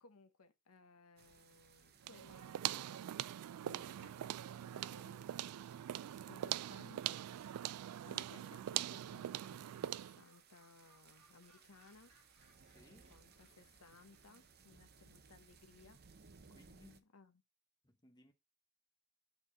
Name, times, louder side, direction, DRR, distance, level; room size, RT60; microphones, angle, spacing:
voice 1, 0.0-5.6 6.3-7.2 8.0-12.1 12.8-16.3 17.1-17.4, left 3 dB, 85° left, 1.1 m, -62 dB
sound 1, 1.2-17.0, right 5 dB, 50° right, 0.8 m, -65 dB
sound 2, 2.0-10.2, right 12 dB, 80° right, 0.3 m, -42 dB
Gull seagull, 8.7-14.5, right 1 dB, 30° right, 4.7 m, -73 dB
voice 2, 12.6-13.1 16.5-17.1 17.8-18.3, left 2 dB, 20° left, 1.0 m, -64 dB
8.7 x 4.3 x 4.1 m
head